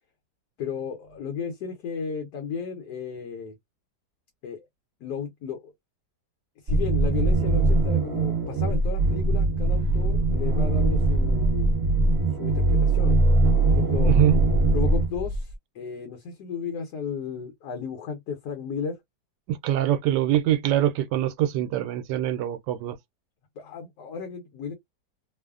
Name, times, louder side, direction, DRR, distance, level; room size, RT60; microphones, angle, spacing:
voice 1, 0.6-3.6 4.4-4.6 5.0-5.7 6.6-11.7 12.4-13.2 13.6-14.1 14.7-19.0 23.6-24.7, left 6 dB, 75° left, 1.3 m, -34 dB
sound 1, 6.7-15.5, right 2 dB, 45° right, 1.3 m, -21 dB
voice 2, 14.0-14.3 19.5-23.0, right 12 dB, 90° right, 1.2 m, -24 dB
3.0 x 2.0 x 2.3 m
omnidirectional pair, 1.8 m